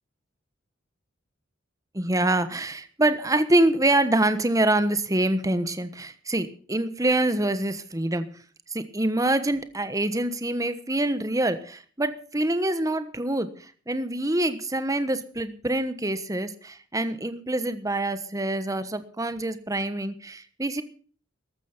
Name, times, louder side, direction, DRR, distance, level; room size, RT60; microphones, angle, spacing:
voice 1, 1.9-8.3 8.7-13.5 13.9-20.8, right 1 dB, 15° right, 12 dB, 1.2 m, -25 dB
14.5 x 12.5 x 6.0 m, 0.43 s
head